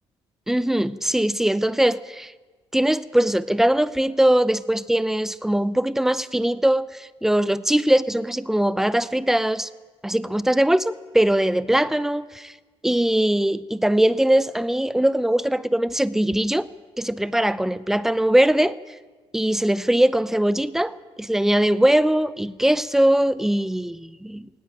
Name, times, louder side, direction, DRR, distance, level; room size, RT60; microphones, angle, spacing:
voice 1, 0.5-2.3 2.7-9.7 10.0-12.5 12.8-16.7 17.0-18.8 19.3-24.5, right 1 dB, 5° right, 0.6 m, -21 dB
19.0 x 16.5 x 9.0 m
cardioid pair, 145°, 11 cm